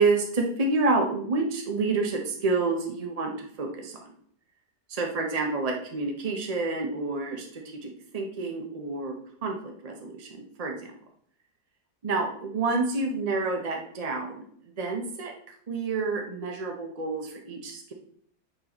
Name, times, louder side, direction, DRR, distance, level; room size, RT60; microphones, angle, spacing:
voice 1, 0.0-4.1 4.9-9.1 9.4-10.9 12.0-14.4 14.8-15.3 15.7-17.9, right 3 dB, 50° right, 2 dB, 0.4 m, -28 dB
9.3 x 3.9 x 2.9 m, 0.64 s
omnidirectional pair, 1.8 m